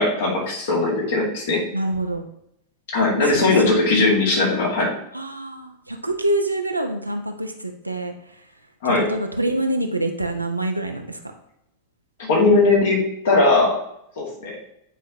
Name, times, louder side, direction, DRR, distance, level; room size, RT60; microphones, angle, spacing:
voice 1, 0.0-1.6 2.9-4.9 8.8-9.1 12.3-13.8 14.2-14.6, left 3 dB, 60° left, -2 dB, 2.4 m, -19 dB
voice 2, 1.7-2.3 3.3-3.8 5.1-8.1 8.8-11.2, right 1 dB, 85° right, 4 dB, 0.7 m, -26 dB
9.1 x 4.6 x 3.0 m, 0.78 s
figure-of-eight pair, 90°, 0 cm